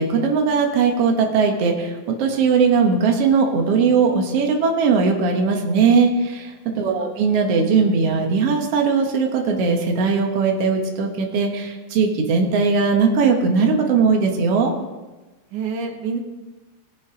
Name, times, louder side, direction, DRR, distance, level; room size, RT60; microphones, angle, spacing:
voice 1, 0.0-14.7, right 5 dB, 55° right, 2 dB, 2.2 m, -19 dB
voice 2, 6.7-7.1 15.5-16.2, right 5 dB, 85° right, 5 dB, 2.6 m, -28 dB
19.0 x 7.3 x 5.1 m, 1.2 s
omnidirectional pair, 3.4 m